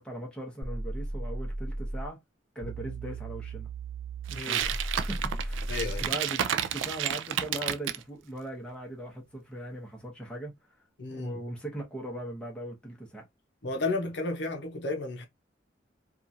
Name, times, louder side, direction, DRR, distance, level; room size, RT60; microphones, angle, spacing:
voice 1, 0.0-2.2 2.5-3.7 4.3-5.7 6.0-10.7 11.1-13.2, right 1 dB, 5° left, 0.8 m, -39 dB
sound 1, 0.6-2.1 2.6-6.1, right 2 dB, 55° right, 1.1 m, -35 dB
sound 2, 4.3-8.0, right 10 dB, 80° right, 0.3 m, -31 dB
voice 2, 5.7-6.1 11.0-11.4 13.6-15.3, left 3 dB, 65° left, 0.6 m, -32 dB
2.9 x 2.4 x 2.6 m
head